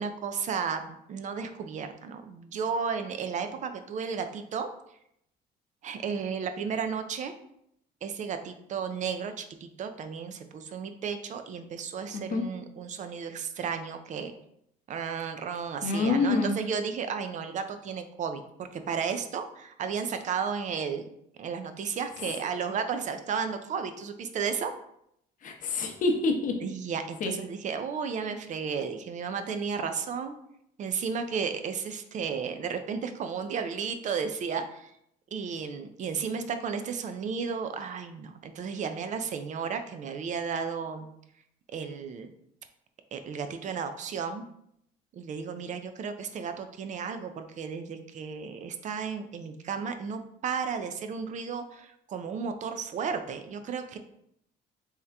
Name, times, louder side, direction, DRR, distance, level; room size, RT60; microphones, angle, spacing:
voice 1, 0.0-4.7 5.8-7.3 8.0-14.3 14.9-21.1 21.4-24.7 26.6-30.3 30.8-34.9 35.3-41.1 41.7-42.3 43.1-44.5 45.1-54.0, right 6 dB, 45° right, 8 dB, 0.4 m, -33 dB
voice 2, 12.1-12.5 15.8-16.5 22.2-22.3 25.4-26.6 27.2-27.3, left 3 dB, 50° left, 3 dB, 0.7 m, -27 dB
3.5 x 2.8 x 3.3 m, 0.74 s
cardioid pair, 110°, 17 cm